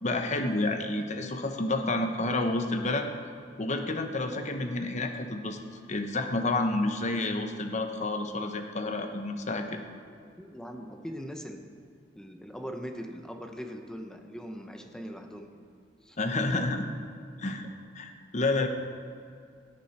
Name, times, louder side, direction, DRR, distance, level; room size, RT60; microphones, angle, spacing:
voice 1, 0.0-3.1 3.6-5.6 5.9-9.8 16.2-16.8 17.4-17.7 17.9-18.7, left 2 dB, 40° left, 5 dB, 1.0 m, -29 dB
voice 2, 10.4-11.6 12.1-15.6 16.0-16.2, equal, 5° left, 4 dB, 0.9 m, -41 dB
17.0 x 9.1 x 4.3 m, 2.3 s
head